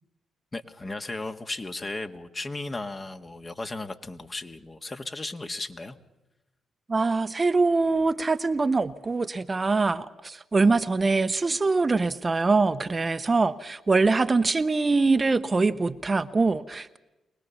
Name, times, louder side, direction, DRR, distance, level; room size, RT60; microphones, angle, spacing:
voice 1, 0.5-6.0, left 2 dB, 30° left, 7 dB, 1.6 m, -35 dB
voice 2, 6.9-17.0, right 3 dB, 35° right, 11 dB, 0.9 m, -23 dB
24.0 x 19.5 x 7.1 m, 0.99 s
hypercardioid pair, 45°, 0 cm